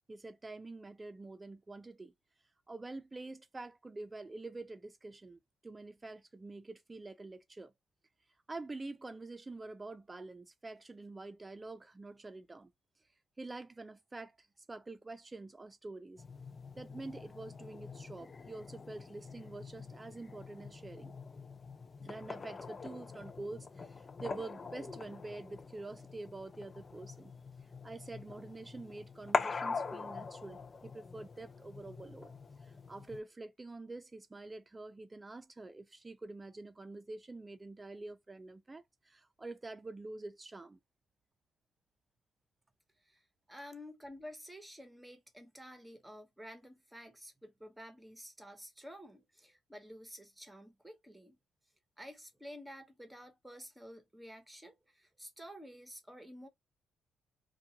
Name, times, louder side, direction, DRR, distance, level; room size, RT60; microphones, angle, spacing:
voice 1, 0.1-2.1 2.7-7.7 8.5-12.7 13.4-14.4 14.7-16.2 16.8-21.1 22.0-27.3 27.8-32.3 32.9-40.8, right 2 dB, 20° right, 0.5 m, -47 dB
sound 1, 16.2-33.2, left 4 dB, 35° left, 0.4 m, -43 dB
voice 2, 43.0-51.4 52.0-56.5, equal, 5° right, 1.0 m, -51 dB
2.5 x 2.3 x 2.8 m
cardioid pair, 90°, 0 cm